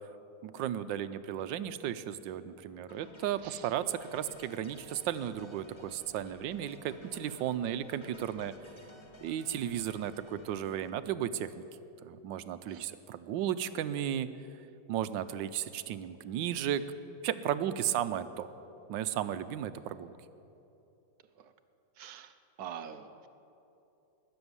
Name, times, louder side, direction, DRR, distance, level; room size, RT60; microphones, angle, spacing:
voice 1, 0.4-8.5 9.2-11.7 12.0-14.3 14.9-16.8 17.2-18.5 18.9-20.1, right 10 dB, 80° right, 13 dB, 1.3 m, -34 dB
sound 1, 2.9-10.9, left 1 dB, 20° left, 0.8 m, -54 dB
voice 2, 22.0-23.3, right 8 dB, 65° right, 10 dB, 1.1 m, -45 dB
20.0 x 7.1 x 9.6 m, 2.9 s
omnidirectional pair, 2.0 m